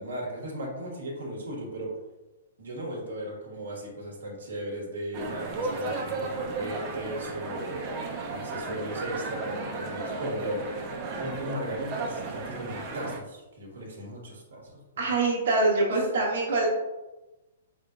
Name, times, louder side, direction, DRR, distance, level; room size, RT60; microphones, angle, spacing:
voice 1, 0.0-1.9 2.6-8.0 8.3-14.8, right 1 dB, 90° right, -2 dB, 1.2 m, -37 dB
sound 1, 5.1-13.2, right 3 dB, 35° right, 0.6 m, -34 dB
voice 2, 15.0-16.7, right 2 dB, 65° right, -4 dB, 1.1 m, -24 dB
4.3 x 3.6 x 2.4 m, 1.0 s
hypercardioid pair, 140°, 0 cm